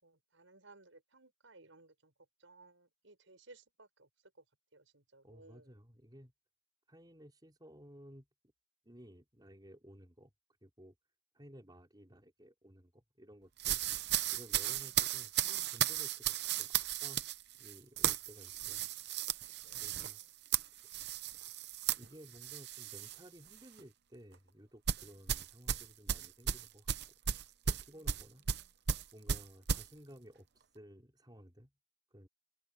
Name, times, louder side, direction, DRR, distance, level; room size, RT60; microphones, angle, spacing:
voice 1, 0.0-2.1 2.4-4.1 4.3-4.4 4.7-5.7 14.7-15.3 19.6-19.9 25.0-25.1 27.9-28.2 28.4-28.7, right 3 dB, 75° right, 6.2 m, -61 dB
voice 2, 5.2-6.3 6.9-8.3 8.8-10.3 10.6-10.9 11.3-13.8 14.3-18.9 19.8-20.2 21.4-21.5 21.9-26.9 27.6-28.4 29.1-30.5 30.7-31.7 32.1-32.3, equal, 20° right, 4.8 m, -56 dB
sound 1, 13.6-23.2 23.5-23.8 24.9-29.9, right 9 dB, 55° right, 0.8 m, -35 dB
open air
head